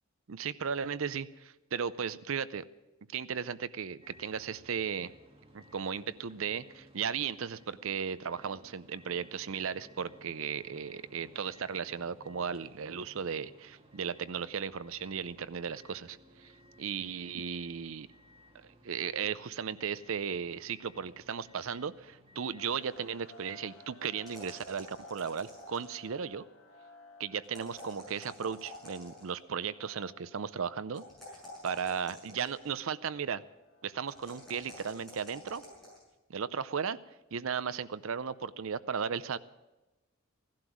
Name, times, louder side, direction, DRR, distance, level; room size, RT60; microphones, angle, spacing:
voice 1, 0.3-2.6 3.1-5.1 5.5-16.5 16.8-18.1 18.5-26.4 27.2-31.0 31.6-33.4 33.8-35.6 36.3-37.0 37.3-39.4, right 7 dB, 65° right, 15 dB, 0.5 m, -36 dB
sound 1, 4.0-23.0, equal, 25° right, 2.0 m, -59 dB
sound 2, 22.5-34.9, left 2 dB, 70° left, 1.7 m, -57 dB
sound 3, 24.2-26.0 27.4-29.4 30.9-32.8 34.1-36.0, left 1 dB, ahead, 6.8 m, -49 dB
16.5 x 11.5 x 6.2 m, 1.0 s
head